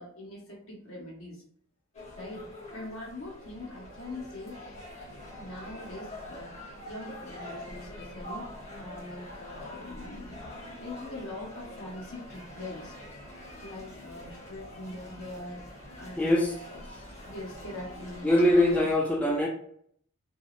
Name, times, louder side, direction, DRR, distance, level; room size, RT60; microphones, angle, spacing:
voice 1, 0.0-1.4 2.2-2.5 2.7-4.6 5.3-8.5 8.8-13.0 13.6-16.8 17.2-18.4, left 1 dB, 75° left, -3 dB, 1.1 m, -42 dB
sound 1, 1.9-19.0, left 1 dB, 35° left, 0.8 m, -44 dB
voice 2, 16.2-16.5 18.2-19.5, left 1 dB, 5° left, -1 dB, 0.3 m, -23 dB
2.6 x 2.0 x 2.4 m, 0.65 s
head